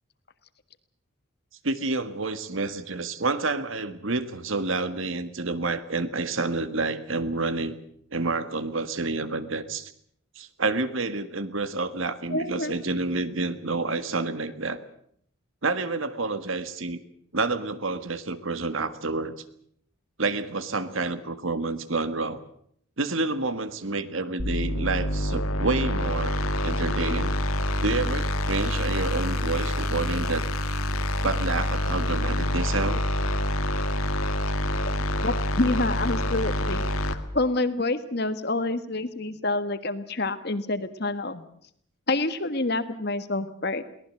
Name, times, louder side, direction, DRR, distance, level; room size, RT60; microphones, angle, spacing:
voice 1, 1.6-7.8 8.1-9.9 10.4-14.8 15.6-17.0 17.3-19.3 20.2-22.4 23.0-27.3 27.8-30.4 31.2-33.0, right 3 dB, 70° right, 12 dB, 1.7 m, -29 dB
voice 2, 12.3-12.8 34.8-34.9 35.2-41.4 42.1-43.8, left 2 dB, 50° left, 11 dB, 1.5 m, -28 dB
sound 1, 24.4-37.1, left 1 dB, 90° left, 1.8 m, -27 dB
23.0 x 18.5 x 7.7 m, 0.67 s
head